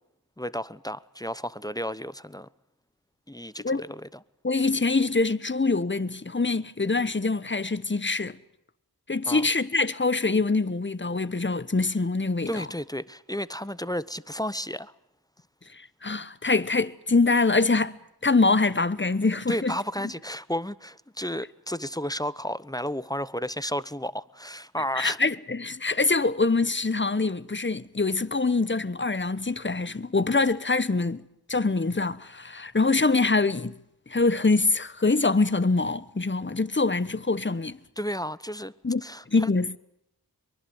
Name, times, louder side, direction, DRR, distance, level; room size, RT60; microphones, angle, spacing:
voice 1, 0.4-2.5 3.3-4.2 9.3-9.5 12.5-14.9 19.5-25.2 38.0-38.7 39.0-39.5, equal, 10° left, 1.0 m, -32 dB
voice 2, 4.4-8.4 9.1-12.6 15.7-19.7 25.0-31.2 31.5-33.8 34.1-37.8 38.8-39.0 39.3-39.8, left 3 dB, 30° left, 1.2 m, -24 dB
24.0 x 23.5 x 7.9 m
wide cardioid pair, 50°, 39 cm